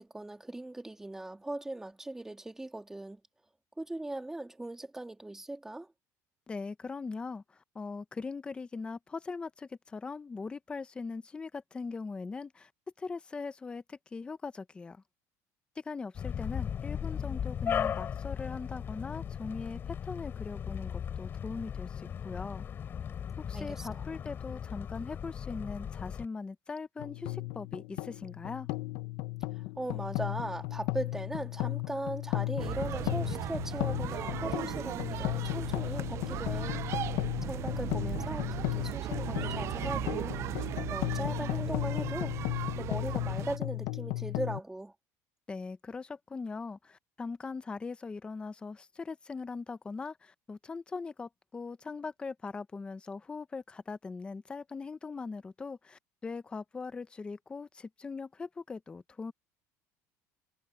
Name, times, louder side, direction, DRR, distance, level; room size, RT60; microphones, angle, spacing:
voice 1, 0.0-3.2 3.8-5.9 17.1-17.4 23.5-24.0 29.8-36.8 37.4-44.9, right 2 dB, 5° right, 3.0 m, -39 dB
voice 2, 6.5-12.7 13.0-15.0 15.8-22.7 23.5-28.7 45.5-59.3, left 4 dB, 15° left, 0.7 m, -40 dB
sound 1, 16.1-26.3, left 8 dB, 30° left, 4.1 m, -37 dB
sound 2, 27.0-44.6, left 20 dB, 70° left, 0.9 m, -35 dB
sound 3, 32.6-43.6, right 14 dB, 45° right, 0.4 m, -37 dB
cardioid pair, 155°, 7 cm